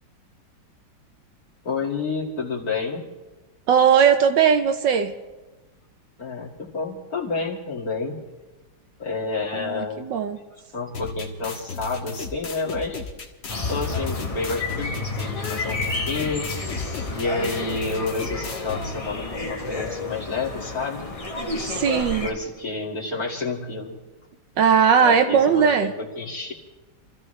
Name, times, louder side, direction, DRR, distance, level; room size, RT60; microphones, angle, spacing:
voice 1, 1.6-3.0 6.2-8.2 9.0-10.1 10.7-13.0 13.7-16.5 17.1-21.0 22.0-24.0 25.0-26.5, left 4 dB, 45° left, -3 dB, 2.7 m, -29 dB
voice 2, 3.7-5.1 9.5-10.4 21.6-22.3 24.6-25.9, right 7 dB, 70° right, 7 dB, 1.4 m, -19 dB
sound 1, 10.9-18.9, left 3 dB, 60° left, 2.1 m, -35 dB
sound 2, 13.5-22.3, left 3 dB, 25° left, 0.8 m, -30 dB
28.0 x 15.0 x 3.3 m, 1.1 s
omnidirectional pair, 2.2 m